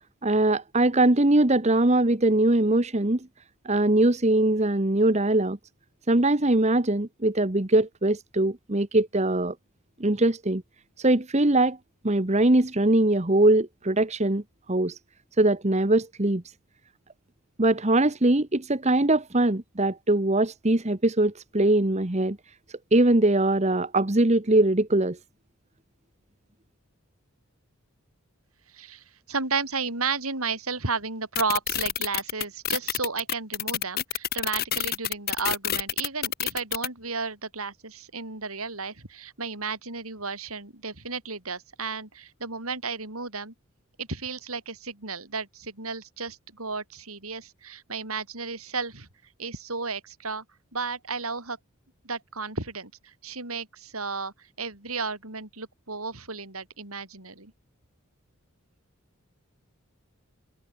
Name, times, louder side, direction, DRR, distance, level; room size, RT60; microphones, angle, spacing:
voice 1, 0.2-3.3 3.6-5.6 6.1-9.5 10.0-10.6 11.0-11.8 12.0-14.4 14.7-15.0 15.4-16.4 17.6-22.4 22.9-25.2, right 2 dB, 30° right, 1.2 m, -22 dB
voice 2, 28.7-43.5 44.0-49.1 49.4-50.4 50.7-51.6 52.0-57.5, right 4 dB, 80° right, 7.8 m, -33 dB
sound 1, 31.3-36.9, left 10 dB, 45° left, 4.1 m, -27 dB
head